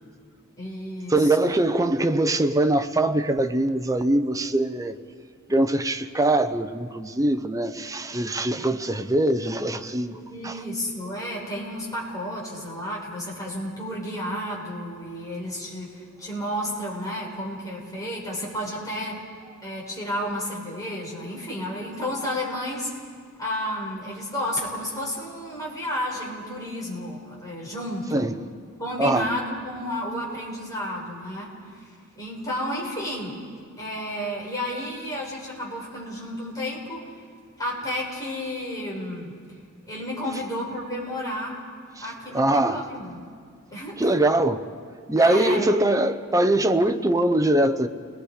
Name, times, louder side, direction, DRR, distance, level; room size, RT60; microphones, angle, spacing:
voice 1, 0.6-1.5 10.1-19.2 19.6-22.9 23.4-28.3 28.8-31.5 31.8-33.3 33.8-37.0 37.6-39.3 39.9-41.6 42.0-43.2 43.7-44.1 45.2-45.7, equal, 15° left, 5.7 m, -32 dB
voice 2, 1.1-4.9 5.5-10.2 10.4-10.6 28.1-28.3 29.0-29.3 42.3-42.9 44.0-44.7 45.1-47.9, right 1 dB, 15° right, 0.8 m, -22 dB
30.0 x 20.0 x 5.1 m
head